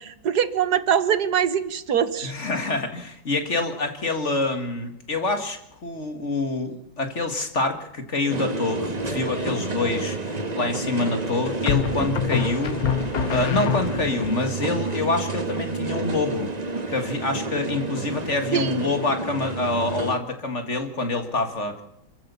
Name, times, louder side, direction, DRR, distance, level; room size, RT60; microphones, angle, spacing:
voice 1, 0.0-2.3 18.5-18.8, right 8 dB, 55° right, 13 dB, 1.6 m, -23 dB
voice 2, 2.2-12.8 13.3-16.5 16.9-21.8, left 3 dB, 35° left, 6 dB, 2.2 m, -26 dB
sound 1, 8.3-20.2, right 3 dB, 25° right, 1.1 m, -30 dB
sound 2, 9.0-9.6 11.7-14.3, left 8 dB, 55° left, 1.4 m, -26 dB
27.5 x 14.5 x 6.9 m, 0.82 s
omnidirectional pair, 2.2 m